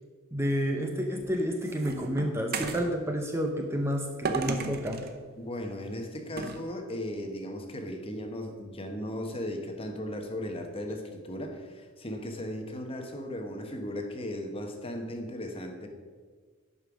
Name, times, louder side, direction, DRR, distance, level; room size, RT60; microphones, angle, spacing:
voice 1, 0.3-5.0, equal, 10° right, 2 dB, 0.7 m, -30 dB
sound 1, 1.0-2.9 4.2-5.1 6.4-6.6, right 4 dB, 45° right, 0.8 m, -34 dB
voice 2, 5.4-15.9, left 1 dB, 25° left, 4 dB, 1.0 m, -36 dB
10.5 x 5.4 x 6.1 m, 1.6 s
head